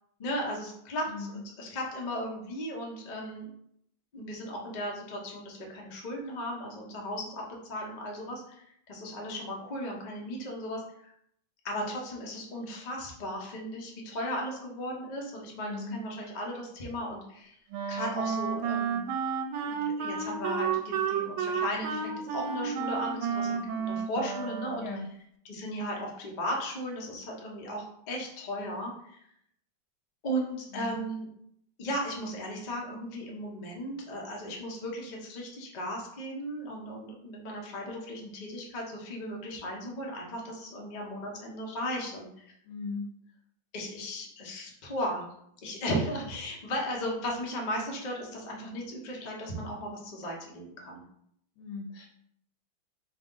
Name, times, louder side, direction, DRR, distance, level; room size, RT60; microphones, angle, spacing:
voice 1, 0.2-1.3 1.6-3.5 4.1-11.1 11.6-17.6 17.9-19.1 19.7-25.0 25.4-29.2 30.2-31.3 31.8-42.5 43.7-45.2 45.6-51.0, equal, 60° left, -1 dB, 0.4 m, -36 dB
voice 2, 1.1-1.4 15.5-16.0 24.8-25.1 30.7-30.9 42.7-43.0 51.6-52.1, left 5 dB, 80° left, 2 dB, 1.3 m, -38 dB
Wind instrument woodwind instrument, 17.7-25.1, right 6 dB, 85° right, 1.4 m, -31 dB
3.7 x 3.3 x 3.7 m, 0.71 s
omnidirectional pair, 2.2 m